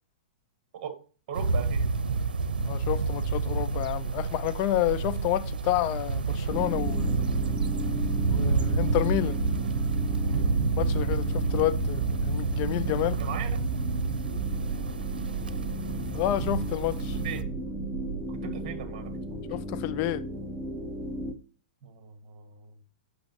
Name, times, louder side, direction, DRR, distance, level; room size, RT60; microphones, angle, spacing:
voice 1, 1.3-1.9 10.2-10.6 13.2-13.6 17.2-17.5 18.3-19.5 21.8-22.7, right 8 dB, 50° right, 1.7 m, -39 dB
sound 1, 1.3-17.4, right 4 dB, 85° right, 0.7 m, -29 dB
voice 2, 2.6-7.3 8.3-9.4 10.8-13.2 16.1-17.2 19.5-20.2, left 14 dB, 40° left, 0.7 m, -29 dB
sound 2, 3.1-18.2, right 7 dB, 15° left, 4.4 m, -39 dB
sound 3, 6.5-21.3, equal, ahead, 1.0 m, -36 dB
8.6 x 6.2 x 2.9 m
hypercardioid pair, 120°, 5 cm